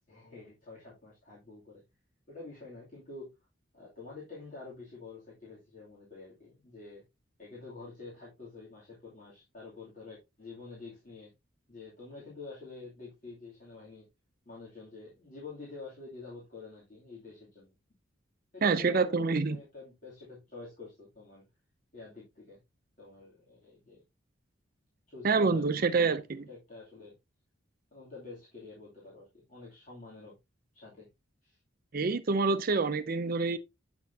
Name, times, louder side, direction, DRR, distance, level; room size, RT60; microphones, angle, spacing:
voice 1, 0.1-1.8 2.3-3.4 3.7-7.0 7.4-11.3 11.7-14.1 14.4-17.7 18.5-21.4 21.9-22.6 23.0-24.0 25.1-26.2 26.5-27.2 27.9-30.3 30.7-31.1 31.4-31.6, left 3 dB, 40° left, 2.8 m, -47 dB
voice 2, 18.6-19.6 25.2-26.4 31.9-33.6, right 4 dB, 45° right, 0.5 m, -27 dB
8.6 x 6.1 x 2.7 m
head